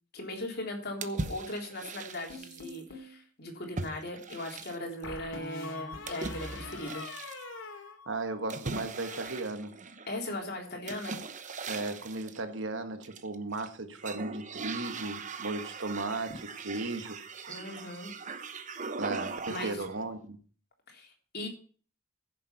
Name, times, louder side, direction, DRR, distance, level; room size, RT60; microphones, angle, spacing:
voice 1, 0.1-7.0 10.1-11.2 17.5-18.1 19.5-19.8 20.9-21.5, left 1 dB, 55° left, 3.7 m, -38 dB
sound 1, 1.0-2.8 3.8-5.0 6.1-7.4 8.5-10.2 10.9-12.4 13.0-13.7 14.0-20.0, right 4 dB, 40° right, 1.0 m, -40 dB
sound 2, 2.3-3.1 5.0-8.5 8.8-9.3, left 2 dB, 70° left, 3.1 m, -43 dB
voice 2, 8.1-9.8 11.7-17.2 19.0-20.4, right 2 dB, 70° right, 1.6 m, -36 dB
15.0 x 7.3 x 5.8 m
head